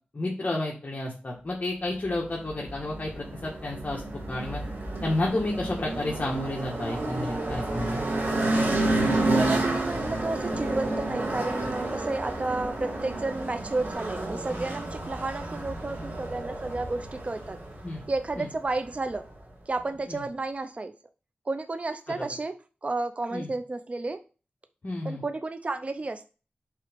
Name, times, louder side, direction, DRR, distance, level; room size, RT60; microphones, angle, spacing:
voice 1, 0.1-4.0 4.3-4.6 5.0-8.0 17.8-18.0 18.4-18.5 20.1-20.2 22.2-22.3 23.3-23.5 24.8-25.2, left 2 dB, 50° left, -2 dB, 1.5 m, -31 dB
sound 1, 2.0-19.5, right 2 dB, 85° right, 2.0 m, -30 dB
voice 2, 9.1-17.6 18.1-19.2 19.7-20.9 21.5-22.5 22.8-24.2 25.0-26.3, right 3 dB, 40° right, 9 dB, 0.5 m, -32 dB
5.6 x 4.0 x 5.2 m, 0.35 s
wide cardioid pair, 70°, 3 cm